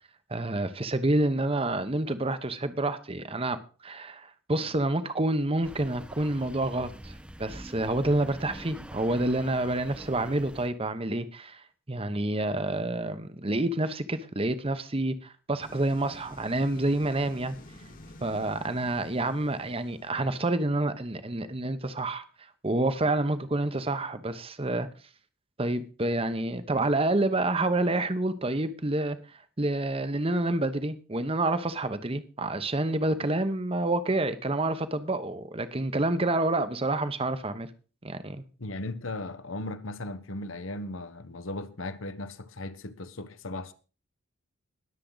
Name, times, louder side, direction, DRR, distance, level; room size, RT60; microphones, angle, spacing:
voice 1, 0.3-3.6 3.8-17.6 18.2-22.2 22.6-24.9 25.6-29.2 29.6-37.7 38.0-38.4, right 2 dB, 25° right, 1.0 m, -28 dB
sound 1, 5.6-10.7, equal, 5° right, 0.6 m, -45 dB
sound 2, 15.6-20.7, left 1 dB, 40° left, 1.7 m, -50 dB
voice 2, 38.6-43.7, left 2 dB, 70° left, 1.1 m, -37 dB
20.5 x 7.5 x 4.0 m
head